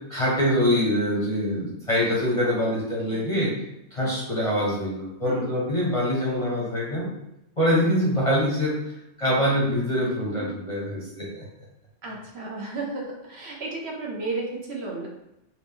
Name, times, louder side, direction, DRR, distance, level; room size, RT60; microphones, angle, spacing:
voice 1, 0.1-3.5 3.9-7.1 7.6-8.7 9.2-11.4, equal, 35° left, -5 dB, 0.7 m, -24 dB
voice 2, 12.0-15.1, right 3 dB, 60° right, -2 dB, 0.9 m, -33 dB
3.5 x 2.4 x 3.5 m, 0.88 s
omnidirectional pair, 1.3 m